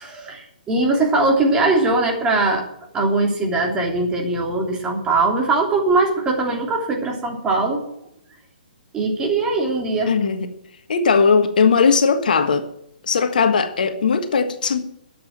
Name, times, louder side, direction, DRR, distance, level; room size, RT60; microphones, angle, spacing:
voice 1, 0.0-2.6 2.9-7.8 8.9-10.1, right 3 dB, 15° right, 3.1 m, -20 dB
voice 2, 10.1-10.5 10.9-12.7 13.1-14.8, left 5 dB, 60° left, 1.5 m, -18 dB
13.0 x 7.9 x 8.9 m
figure-of-eight pair, 130°, 5 cm